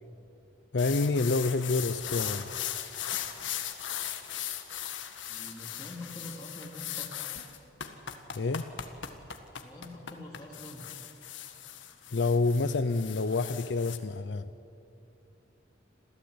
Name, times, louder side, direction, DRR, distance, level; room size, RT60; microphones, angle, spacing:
voice 1, 0.7-2.5 8.3-8.7 12.1-14.5, left 3 dB, 70° left, 12 dB, 0.6 m, -28 dB
sound 1, 0.8-14.0, left 10 dB, 85° left, 1.7 m, -38 dB
voice 2, 5.3-7.1 9.6-10.9, left 1 dB, 20° left, -4 dB, 2.9 m, -45 dB
27.0 x 15.5 x 9.5 m, 2.7 s
head